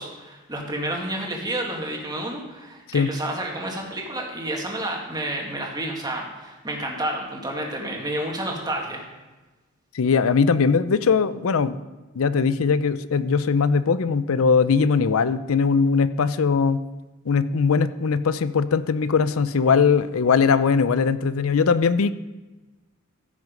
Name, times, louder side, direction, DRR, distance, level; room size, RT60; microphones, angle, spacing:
voice 1, 0.0-9.0, right 1 dB, 20° right, 0 dB, 2.0 m, -30 dB
voice 2, 9.9-11.8 12.2-16.8 17.3-22.1, left 5 dB, 75° left, 14 dB, 0.5 m, -20 dB
15.0 x 6.4 x 5.2 m, 1.1 s
head